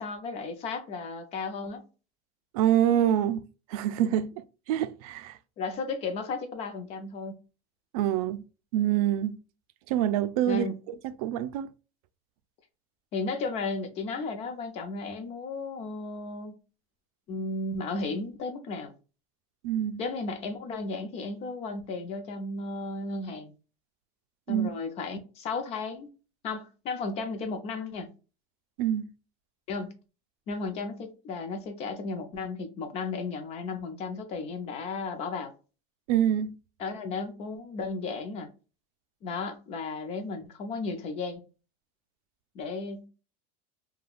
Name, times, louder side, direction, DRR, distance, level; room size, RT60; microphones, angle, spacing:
voice 1, 0.0-1.8 5.6-7.4 10.5-10.8 13.1-16.5 17.3-18.9 20.0-23.5 24.5-26.1 26.4-28.1 29.7-29.9 30.5-35.5 36.8-38.5 39.2-41.4 42.5-43.1, left 3 dB, 35° left, 0.5 m, -34 dB
voice 2, 2.5-3.4 3.7-5.4 7.9-8.4 8.7-9.4 9.9-10.7 11.0-11.7 19.6-20.0 24.5-24.7 28.8-29.1 36.1-36.5, right 11 dB, 85° right, 0.4 m, -26 dB
3.4 x 2.3 x 2.3 m
cardioid pair, 165°, 18 cm